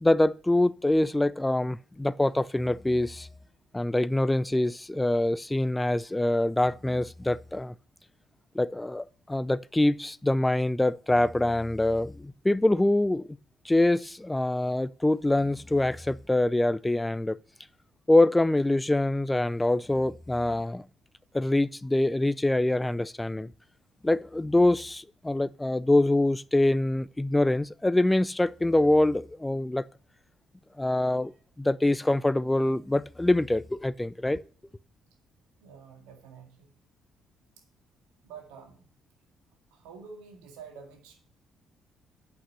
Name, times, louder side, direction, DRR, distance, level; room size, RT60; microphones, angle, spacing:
voice 1, 0.0-3.3 3.7-7.7 8.5-13.3 13.6-17.4 18.1-20.9 21.3-23.5 24.0-29.9 30.8-31.3 31.6-34.4, left 1 dB, 15° left, 0.4 m, -25 dB
voice 2, 35.6-36.7 38.2-38.9 39.7-41.2, right 6 dB, 85° right, 2.0 m, -48 dB
8.3 x 5.8 x 7.8 m
supercardioid pair, 60°, 0 cm